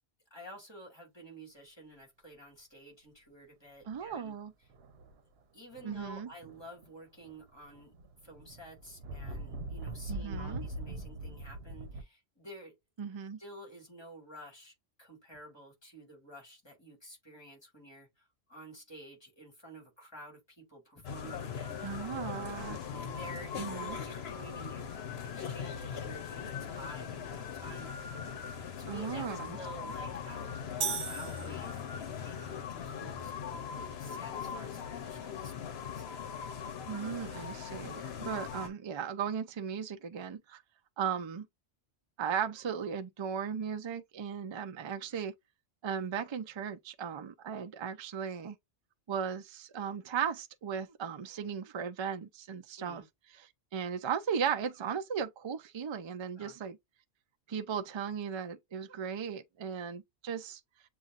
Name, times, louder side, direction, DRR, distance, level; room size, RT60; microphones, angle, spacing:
voice 1, 0.3-4.3 5.5-7.9 8.2-12.7 13.4-21.8 22.5-27.9 28.8-29.3 29.6-30.5 31.1-36.1 52.8-53.1 56.4-56.6, right 1 dB, 20° left, 2.2 m, -51 dB
sound 1, 3.8-4.1 4.7-5.2 5.7-6.9 7.2-12.0, right 1 dB, 65° right, 1.0 m, -42 dB
voice 2, 3.9-4.5 5.8-6.3 10.1-10.6 13.0-13.4 21.8-22.8 23.6-24.0 28.9-29.6 36.9-40.6 41.0-41.5 42.2-45.3 45.8-48.6 49.1-53.0 53.7-56.8 57.5-60.6, right 7 dB, 50° right, 0.3 m, -36 dB
sound 2, 21.0-38.7, left 7 dB, 65° left, 1.0 m, -40 dB
sound 3, 30.8-32.2, right 6 dB, 85° right, 1.0 m, -37 dB
7.2 x 2.5 x 2.5 m
omnidirectional pair, 1.2 m